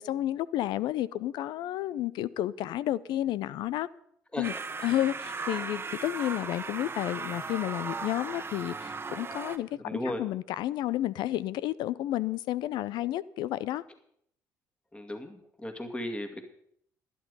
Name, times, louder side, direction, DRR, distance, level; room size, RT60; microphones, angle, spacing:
voice 1, 0.0-3.9 4.4-4.5 4.8-13.8, left 13 dB, 70° left, 0.5 m, -31 dB
sound 1, 4.4-9.6, right 4 dB, 30° right, 1.1 m, -37 dB
voice 2, 9.8-10.2 14.9-16.5, left 1 dB, 15° left, 2.2 m, -36 dB
11.5 x 11.0 x 5.4 m
supercardioid pair, 65°, 8 cm